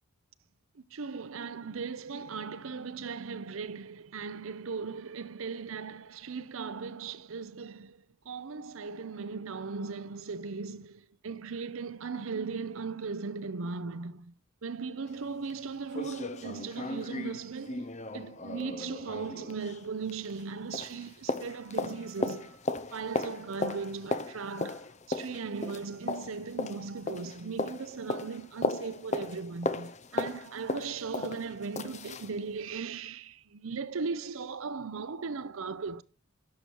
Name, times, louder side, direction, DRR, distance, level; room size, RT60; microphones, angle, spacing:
voice 1, 0.7-14.3 14.6-17.9 18.1-22.6 22.9-36.0, right 5 dB, 70° right, 0.6 m, -38 dB
sound 1, 15.1-15.2 15.5-15.6 15.9-20.5 20.7-32.3 32.7-32.8, left 2 dB, 30° left, 0.7 m, -36 dB
11.0 x 6.8 x 4.5 m
head